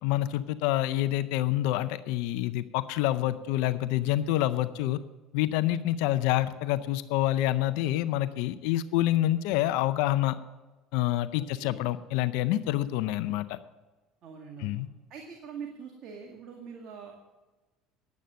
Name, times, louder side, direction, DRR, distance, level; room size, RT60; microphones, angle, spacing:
voice 1, 0.0-5.0 5.3-10.4 10.9-13.6 14.6-14.9, left 14 dB, 75° left, 13 dB, 0.5 m, -27 dB
voice 2, 11.4-11.8 14.2-14.8 15.1-17.1, right 6 dB, 55° right, 1 dB, 2.1 m, -43 dB
10.5 x 8.4 x 7.7 m, 1.2 s
supercardioid pair, 90°, 0 cm